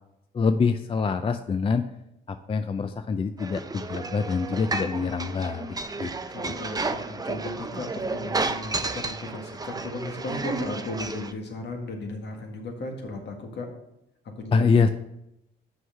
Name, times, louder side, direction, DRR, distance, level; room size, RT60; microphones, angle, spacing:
voice 1, 0.3-1.9 2.3-6.1 6.4-6.7 14.5-14.9, left 5 dB, 30° left, 9 dB, 0.4 m, -25 dB
sound 1, 3.4-11.3, right 3 dB, 20° right, 0.6 m, -32 dB
voice 2, 5.9-13.7 14.2-14.9, left 2 dB, 60° left, 3 dB, 1.7 m, -36 dB
6.3 x 5.6 x 5.6 m, 0.84 s
cardioid pair, 90°, 20 cm